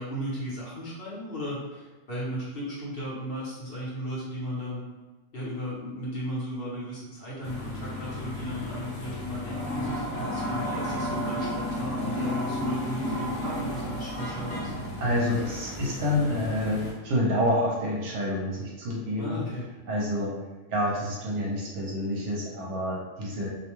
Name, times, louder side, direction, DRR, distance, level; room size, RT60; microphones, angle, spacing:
voice 1, 0.0-4.8 5.3-14.7 19.2-19.7, equal, 50° left, -7 dB, 0.9 m, -35 dB
sound 1, 7.4-16.9, left 1 dB, 80° left, 1.1 m, -33 dB
voice 2, 15.0-19.4 19.9-20.3 20.7-23.5, left 1 dB, 70° right, -3 dB, 0.9 m, -28 dB
2.5 x 2.2 x 3.0 m, 1.2 s
omnidirectional pair, 1.4 m